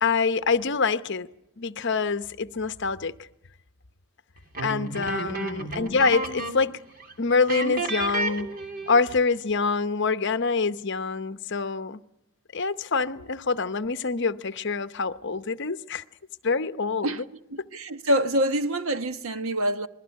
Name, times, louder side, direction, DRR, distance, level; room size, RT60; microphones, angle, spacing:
voice 1, 0.0-1.3 1.6-3.1 4.6-6.8 7.2-8.5 8.9-12.0 12.5-16.0 16.4-17.1, left 4 dB, 50° left, 0.8 m, -25 dB
sound 1, 4.5-6.8 7.0-7.1 7.5-9.1, right 2 dB, 40° right, 2.8 m, -31 dB
voice 2, 5.1-5.5 17.0-17.2 17.5-19.9, right 1 dB, 65° right, 1.2 m, -26 dB
28.0 x 21.5 x 6.5 m
head